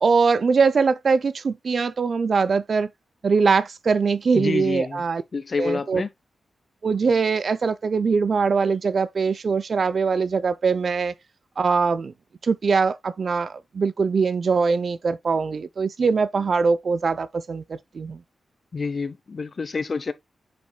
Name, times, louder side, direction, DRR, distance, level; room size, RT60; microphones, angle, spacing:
voice 1, 0.0-2.9 3.2-5.2 5.6-6.0 6.8-11.1 11.6-12.1 12.4-18.2, right 5 dB, 55° right, 0.6 m, -22 dB
voice 2, 4.3-5.0 5.3-6.1 18.7-20.1, left 4 dB, 45° left, 0.7 m, -28 dB
7.8 x 5.3 x 2.2 m
cardioid pair, 80°, 0 cm